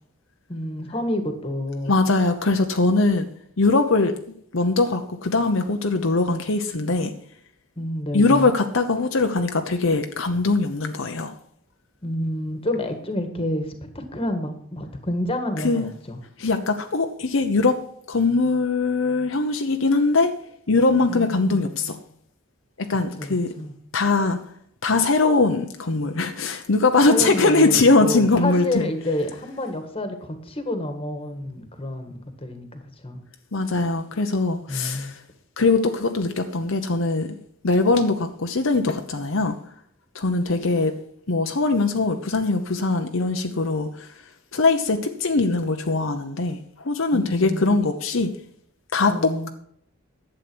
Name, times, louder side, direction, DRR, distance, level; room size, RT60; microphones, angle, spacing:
voice 1, 0.5-2.0 7.8-8.5 12.0-16.2 21.1-21.9 23.2-23.8 27.1-33.2 34.7-35.1 47.1-47.8 49.1-49.5, left 1 dB, 25° left, 7 dB, 1.6 m, -29 dB
voice 2, 1.9-3.3 3.6-4.1 4.5-7.1 8.1-11.3 15.6-15.9 16.4-17.8 18.1-20.3 20.7-22.0 22.9-23.5 23.9-24.4 24.8-28.8 33.5-35.2 35.6-37.3 37.6-39.6 40.1-40.9 41.3-44.1 44.5-48.3 48.9-49.5, left 3 dB, 65° left, 5 dB, 0.9 m, -21 dB
11.5 x 8.2 x 6.1 m, 0.66 s
head